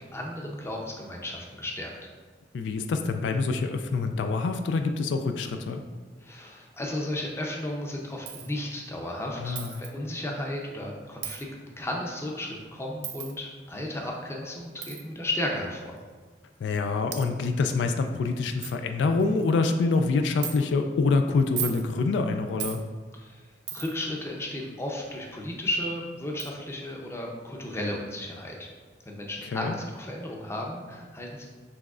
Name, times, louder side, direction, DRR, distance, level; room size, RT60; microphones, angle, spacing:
voice 1, 0.1-1.9 6.2-16.0 23.1-23.5 23.7-28.7 29.1-31.5, left 1 dB, 15° left, -1 dB, 0.5 m, -34 dB
voice 2, 2.5-5.8 9.4-9.7 16.6-22.8 29.5-29.7, left 4 dB, 85° left, 6 dB, 0.3 m, -26 dB
Coin (dropping), 8.3-8.5 9.6-9.9 11.2-11.4 13.0-13.3 14.8-15.0 16.0-16.1 16.7-16.8 17.1-17.3 17.9-18.0 18.3-18.4 18.6-18.8 19.2-19.5 20.4-20.6 21.4-21.8 22.6-22.8 23.7-24.0 25.7-25.8 26.4-26.5, right 10 dB, 85° right, 0.5 m, -35 dB
6.0 x 3.1 x 2.4 m, 1.4 s
head